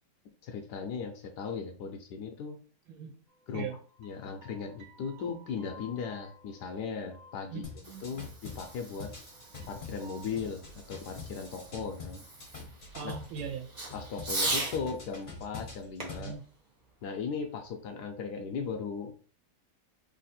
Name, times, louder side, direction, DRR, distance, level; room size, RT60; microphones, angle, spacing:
voice 1, 0.4-2.6 3.5-7.7 8.0-9.1 9.7-12.3 13.9-16.3 17.0-19.2, left 5 dB, 75° left, 4 dB, 1.0 m, -37 dB
sound 1, 3.3-8.9 9.2-10.2, equal, 40° right, 1.1 m, -56 dB
voice 2, 7.5-8.3 12.9-13.7 16.1-16.4, right 7 dB, 85° right, 4 dB, 1.6 m, -40 dB
sound 2, 7.6-13.5 13.9-16.4, left 4 dB, 40° left, 0.7 m, -45 dB
Fireworks, 7.6-14.8 16.0-17.6, right 2 dB, 60° right, 0.4 m, -40 dB
3.3 x 2.8 x 4.2 m, 0.42 s
omnidirectional pair, 2.3 m